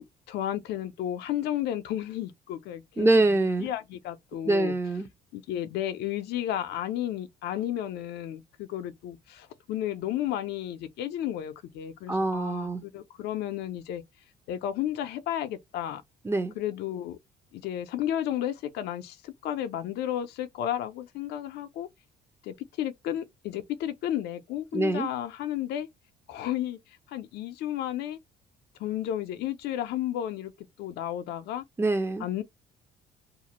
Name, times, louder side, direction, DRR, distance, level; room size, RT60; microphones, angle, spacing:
voice 1, 0.0-4.7 5.3-14.0 14.5-16.0 16.6-17.2 17.5-21.9 22.4-25.9 26.3-28.2 28.8-30.5 30.8-31.6 32.2-32.4, left 11 dB, 75° left, 0.4 m, -33 dB
voice 2, 3.0-3.7 4.5-5.1 12.1-12.8 16.2-16.5 24.7-25.1 31.8-32.3, right 2 dB, 15° right, 0.4 m, -24 dB
2.4 x 2.0 x 2.9 m
cardioid pair, 110°, 17 cm